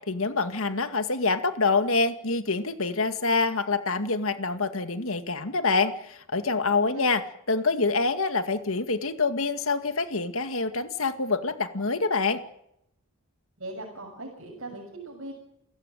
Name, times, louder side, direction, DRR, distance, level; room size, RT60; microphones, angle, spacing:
voice 1, 0.1-7.2 7.5-12.4, left 3 dB, 70° left, 9 dB, 2.1 m, -26 dB
voice 2, 13.6-15.3, right 2 dB, 60° right, -2 dB, 7.0 m, -39 dB
29.5 x 16.5 x 9.2 m, 0.79 s
head